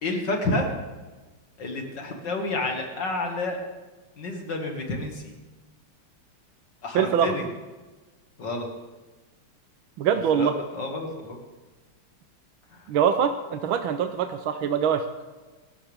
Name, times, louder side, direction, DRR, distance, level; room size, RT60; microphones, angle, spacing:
voice 1, 0.0-0.7 1.6-3.6 4.2-5.2 6.8-7.5 8.4-8.7 10.3-11.4, left 2 dB, 55° left, 2 dB, 2.6 m, -29 dB
voice 2, 6.9-7.4 10.0-10.6 12.9-15.0, right 8 dB, 70° right, 8 dB, 1.5 m, -23 dB
23.0 x 13.0 x 3.6 m, 1.2 s
omnidirectional pair, 2.4 m